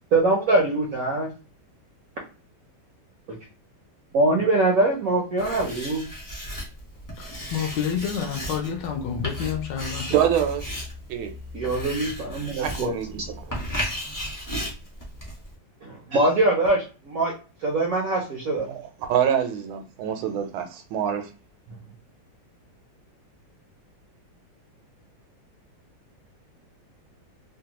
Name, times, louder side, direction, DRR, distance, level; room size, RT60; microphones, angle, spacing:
voice 1, 0.1-1.3 4.1-6.1 11.5-12.9 15.8-17.3 17.6-18.7, right 2 dB, 65° right, 0.8 m, -23 dB
Writing, 5.4-15.5, left 1 dB, 20° left, 0.6 m, -35 dB
voice 2, 7.2-10.1, left 7 dB, 70° left, 1.2 m, -29 dB
voice 3, 10.1-10.6 11.1-11.3 12.6-13.2 19.1-21.2, right 9 dB, 85° right, 1.5 m, -25 dB
3.4 x 2.2 x 2.8 m
omnidirectional pair, 2.2 m